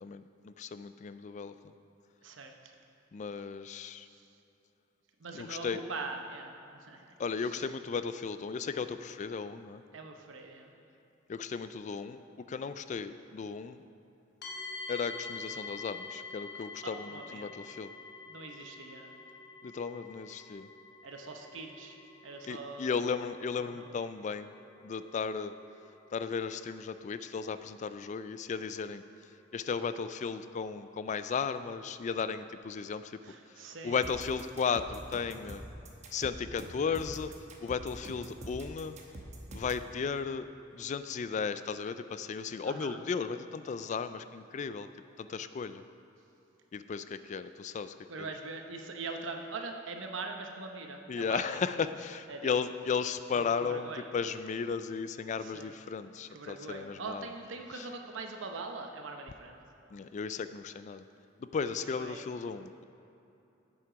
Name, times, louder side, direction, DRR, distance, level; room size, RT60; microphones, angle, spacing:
voice 1, 0.0-1.7 3.1-4.1 5.3-5.8 7.2-9.8 11.3-12.2 12.5-13.8 14.9-17.9 19.6-20.7 22.5-24.5 24.8-25.5 26.1-33.2 33.5-35.6 36.1-37.3 37.6-39.0 39.5-40.5 40.7-44.9 45.2-45.8 46.7-48.3 51.1-57.3 57.7-57.9 59.9-61.0 61.4-62.8, left 5 dB, 40° left, 12 dB, 0.3 m, -35 dB
voice 2, 2.2-2.7 3.7-4.3 5.2-7.1 7.4-7.7 9.9-10.7 16.8-17.5 18.3-19.2 21.0-22.0 22.2-23.1 23.6-23.9 33.2-34.0 42.6-43.0 48.1-51.4 52.3-52.5 53.3-54.0 55.4-55.7 56.3-59.6 62.0-62.3, right 3 dB, 75° right, 4 dB, 0.9 m, -42 dB
sound 1, 14.4-30.1, left 4 dB, 60° left, 1.2 m, -48 dB
sound 2, 34.0-39.8, right 1 dB, 35° right, 1.0 m, -45 dB
8.0 x 7.5 x 5.0 m, 2.9 s
head